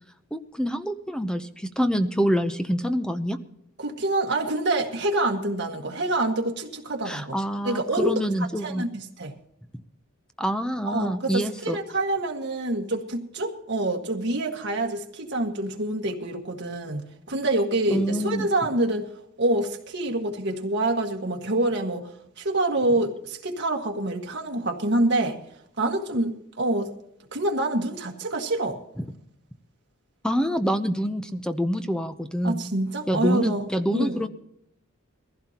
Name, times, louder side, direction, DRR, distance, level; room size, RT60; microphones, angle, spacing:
voice 1, 0.3-3.4 7.1-8.9 10.4-11.8 17.9-18.5 29.0-29.1 30.2-32.7 33.1-34.3, equal, 5° left, 9 dB, 0.7 m, -26 dB
voice 2, 3.8-7.4 7.6-8.2 8.6-9.3 10.9-19.1 19.4-22.1 22.4-25.4 25.8-26.9 27.3-28.8 32.4-34.2, right 2 dB, 55° right, 2 dB, 1.8 m, -26 dB
22.0 x 15.5 x 2.9 m, 0.76 s
head